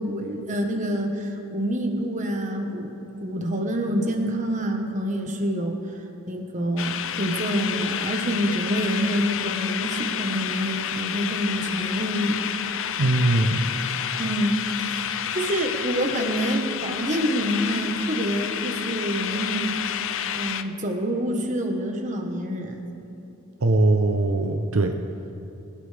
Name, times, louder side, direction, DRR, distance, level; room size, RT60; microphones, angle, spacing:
voice 1, 0.0-5.8 6.3-12.6 14.2-19.8 20.3-22.8, equal, 35° right, 3 dB, 1.3 m, -27 dB
sound 1, 6.8-20.6, left 9 dB, 60° left, 0.5 m, -30 dB
voice 2, 13.0-13.7 23.6-24.9, right 2 dB, 70° right, 4 dB, 0.8 m, -21 dB
22.5 x 12.0 x 3.5 m, 2.8 s
head